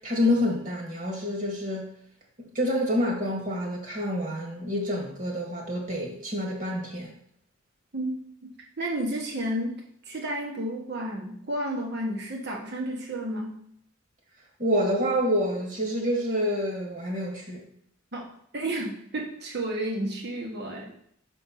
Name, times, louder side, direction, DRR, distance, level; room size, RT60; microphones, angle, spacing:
voice 1, 0.0-1.9 2.6-7.1 14.6-17.6, equal, 40° right, 0 dB, 1.8 m, -27 dB
voice 2, 8.4-9.7 10.1-13.6 18.1-21.0, right 1 dB, 55° right, 0 dB, 1.5 m, -32 dB
5.4 x 4.5 x 5.7 m, 0.69 s
head